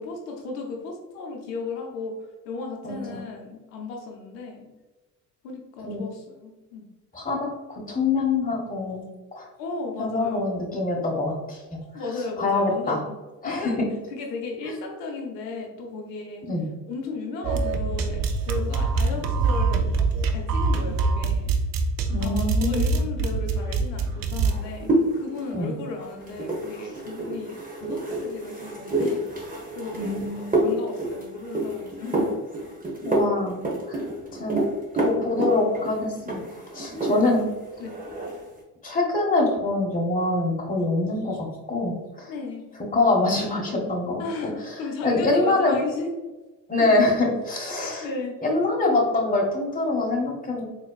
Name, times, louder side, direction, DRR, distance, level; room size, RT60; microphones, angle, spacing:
voice 1, 0.0-4.7 5.4-6.9 9.6-10.6 11.9-13.2 13.4-13.8 14.1-16.5 16.9-19.9 20.3-21.5 22.2-29.2 29.7-32.3 35.4-35.5 37.0-37.3 37.8-38.0 42.3-42.6 44.2-46.1 46.8-46.9 48.0-48.4, left 3 dB, 80° left, 1 dB, 0.7 m, -35 dB
voice 2, 2.8-3.2 5.8-6.0 7.1-9.0 9.3-9.5 10.0-11.6 12.4-13.0 13.4-13.9 14.6-14.7 16.5-16.7 22.1-22.9 25.5-25.7 29.9-30.5 33.0-34.0 34.3-34.6 35.0-36.4 36.7-37.4 38.8-42.3 42.9-44.2 45.0-45.8 46.7-48.0 48.4-50.6, left 2 dB, 15° left, -2 dB, 1.2 m, -24 dB
sound 1, 17.4-24.5, right 3 dB, 45° right, 0.6 m, -24 dB
sound 2, 24.4-37.5 37.8-38.5, right 1 dB, 15° right, 1.2 m, -28 dB
3.9 x 2.9 x 2.3 m, 1.2 s
hypercardioid pair, 60°, 48 cm